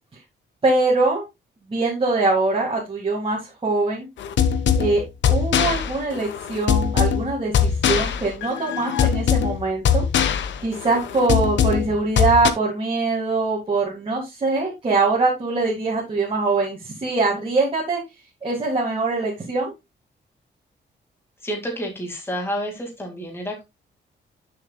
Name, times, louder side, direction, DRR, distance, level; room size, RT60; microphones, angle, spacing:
voice 1, 0.6-1.2 1.7-4.1 4.7-5.0 5.3-10.0 10.6-18.0 18.4-19.7, right 3 dB, 30° right, -4 dB, 2.2 m, -23 dB
sound 1, 4.2-12.5, left 8 dB, 85° left, 1.0 m, -21 dB
voice 2, 21.4-23.6, equal, 15° left, 1 dB, 2.2 m, -29 dB
10.5 x 6.6 x 2.3 m, 0.22 s
wide cardioid pair, 150°, 19 cm